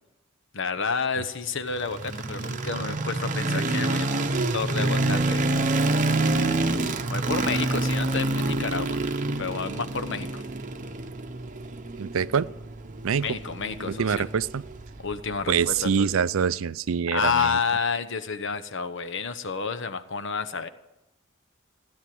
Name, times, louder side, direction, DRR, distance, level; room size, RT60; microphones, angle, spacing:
voice 1, 0.5-5.4 7.1-9.0 9.4-10.4 13.2-14.3 15.0-16.1 17.1-20.7, left 5 dB, 60° left, 10 dB, 1.0 m, -30 dB
sound 1, 1.7-15.8, right 2 dB, 35° right, 0.8 m, -27 dB
voice 2, 12.0-12.5 13.0-13.4 14.0-14.7 15.5-17.6, right 7 dB, 65° right, 18 dB, 0.4 m, -25 dB
16.0 x 10.5 x 7.8 m, 0.95 s
head